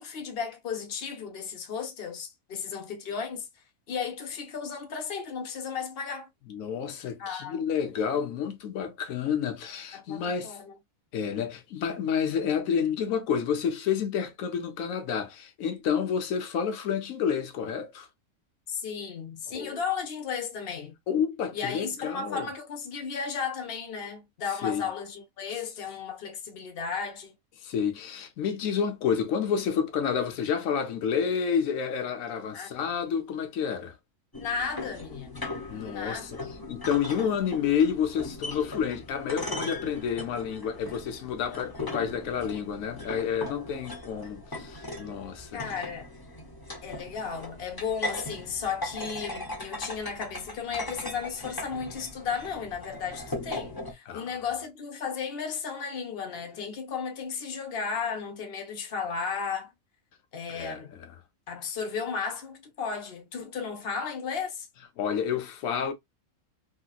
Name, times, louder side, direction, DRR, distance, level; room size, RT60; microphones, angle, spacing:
voice 1, 0.0-3.5 3.9-6.3 7.2-7.6 9.9-10.8 18.7-20.9 21.5-27.3 32.5-32.7 34.3-35.5 35.7-36.8 45.5-46.1 46.8-59.7 60.3-60.9 61.5-64.7, left 6 dB, 45° left, 1.1 m, -34 dB
voice 2, 6.5-10.6 11.1-18.1 19.5-19.8 21.1-22.5 24.6-24.9 27.6-34.0 35.7-36.4 36.7-45.6 54.1-54.3 60.5-61.1 65.0-65.9, left 7 dB, 70° left, 1.2 m, -29 dB
sound 1, 34.3-53.9, left 2 dB, 20° left, 0.7 m, -39 dB
3.2 x 2.9 x 2.3 m
omnidirectional pair, 1.5 m